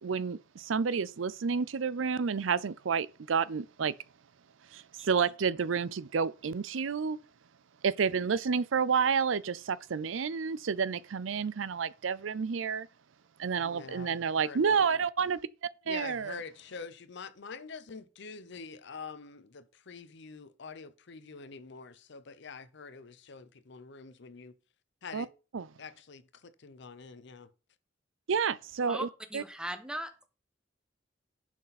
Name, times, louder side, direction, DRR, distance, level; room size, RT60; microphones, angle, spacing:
voice 1, 0.0-3.9 4.7-7.2 7.8-12.9 13.4-15.4 15.9-16.4 25.1-25.3 25.5-25.7 28.3-29.1 29.3-29.4, right 6 dB, 90° right, 0.5 m, -30 dB
voice 2, 13.6-14.8 15.8-24.5 25.0-25.3 25.8-27.5, left 5 dB, 65° left, 0.7 m, -46 dB
voice 3, 28.9-30.3, right 1 dB, 5° right, 1.1 m, -39 dB
10.5 x 6.1 x 4.2 m
head